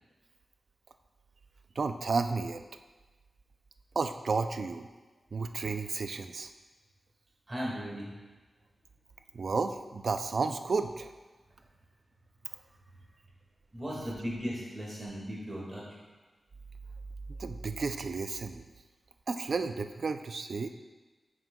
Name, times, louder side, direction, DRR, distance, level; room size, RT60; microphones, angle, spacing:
voice 1, 1.8-2.6 4.0-4.9 5.3-6.5 9.3-11.1 17.4-18.6 19.3-20.7, right 4 dB, 50° right, 8 dB, 0.3 m, -32 dB
voice 2, 7.5-8.2 13.7-15.8, equal, 20° right, -5 dB, 1.8 m, -37 dB
8.9 x 6.3 x 2.2 m, 1.3 s
wide cardioid pair, 170°, 0 cm